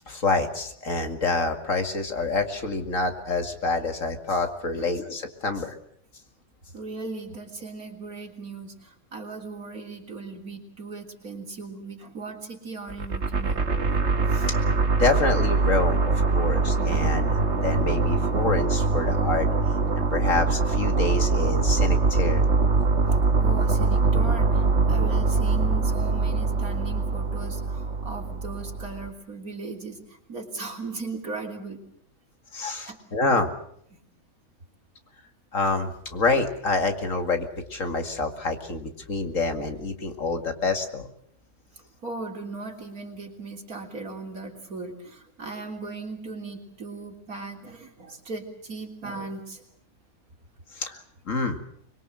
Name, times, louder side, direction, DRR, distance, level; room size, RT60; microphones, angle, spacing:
voice 1, 0.1-5.8 15.0-19.5 20.0-22.4 32.5-33.5 35.5-41.1 50.8-51.0 51.3-51.6, left 3 dB, 60° left, 6 dB, 2.6 m, -27 dB
voice 2, 6.7-13.6 14.3-14.5 23.4-30.0 30.3-31.8 32.9-33.0 42.0-49.6, right 3 dB, 80° right, 3 dB, 3.9 m, -37 dB
sound 1, 12.9-29.1, right 3 dB, 50° right, 2.0 m, -23 dB
25.0 x 22.0 x 7.7 m, 0.68 s
omnidirectional pair, 1.5 m